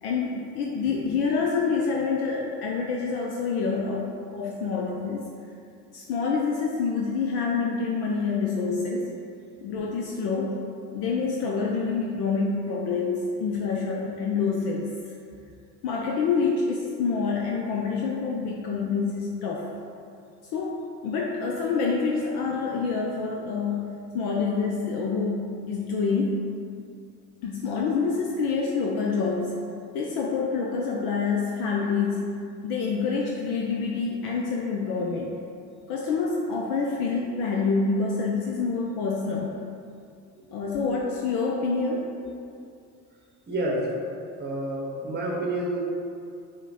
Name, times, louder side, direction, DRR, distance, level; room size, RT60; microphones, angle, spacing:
voice 1, 0.0-5.3 5.9-9.1 9.6-10.6 10.9-14.9 15.8-19.7 20.5-26.4 27.4-29.6 29.9-32.4 32.6-35.3 35.9-39.5 40.5-42.2, left 4 dB, 50° left, -1 dB, 0.5 m, -27 dB
voice 2, 43.5-44.0 44.4-45.8, right 1 dB, 20° right, -2 dB, 0.9 m, -29 dB
5.0 x 2.1 x 4.0 m, 2.4 s
hypercardioid pair, 60°, 49 cm